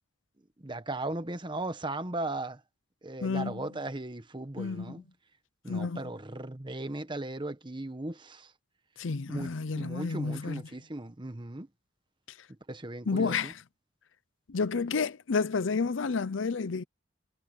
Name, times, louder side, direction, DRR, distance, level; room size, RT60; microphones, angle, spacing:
voice 1, 0.6-2.6 3.0-5.0 5.6-8.5 9.3-11.7 12.7-13.5, right 2 dB, 25° right, 1.2 m, -37 dB
voice 2, 3.2-3.7 4.6-4.9 5.7-6.0 9.0-10.6 13.1-13.6 14.5-16.8, left 4 dB, 70° left, 0.6 m, -30 dB
head